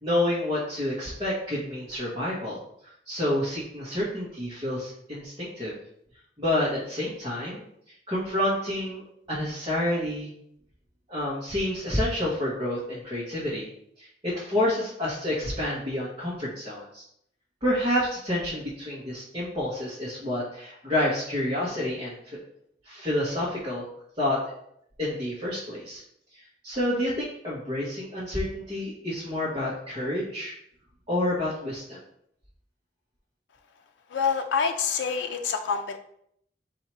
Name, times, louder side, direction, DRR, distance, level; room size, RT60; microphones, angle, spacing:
voice 1, 0.0-5.7 6.4-7.6 8.1-10.3 11.1-13.7 14.0-17.0 17.6-22.2 22.8-23.8 24.2-24.5 25.0-26.0 26.3-30.5 31.1-32.0, left 1 dB, 25° right, -9 dB, 1.2 m, -29 dB
voice 2, 34.1-36.0, left 6 dB, 85° left, 5 dB, 0.4 m, -26 dB
4.2 x 2.8 x 4.6 m, 0.70 s
head